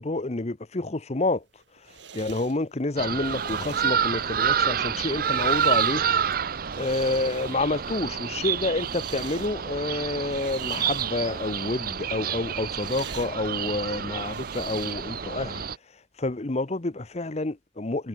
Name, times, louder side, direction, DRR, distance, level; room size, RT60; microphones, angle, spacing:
voice 1, 0.0-1.4 2.1-6.0 6.8-15.6 16.2-18.1, left 2 dB, 35° left, 0.9 m, -28 dB
sound 1, 1.4-15.3, right 7 dB, 75° right, 5.6 m, -47 dB
sound 2, 3.0-15.7, right 7 dB, 50° right, 0.7 m, -28 dB
head